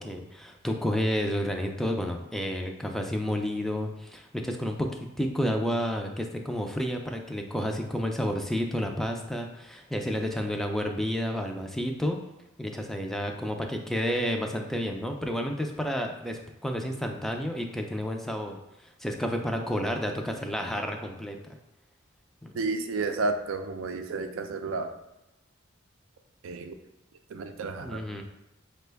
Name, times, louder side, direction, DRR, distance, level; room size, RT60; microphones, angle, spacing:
voice 1, 0.0-4.9 5.2-12.2 12.6-21.5 22.4-22.6 27.8-28.2, equal, ahead, 3 dB, 0.3 m, -30 dB
voice 2, 22.5-24.9 26.4-26.7 27.3-28.0, right 3 dB, 80° right, 7 dB, 0.4 m, -31 dB
4.9 x 2.2 x 3.3 m, 0.94 s
head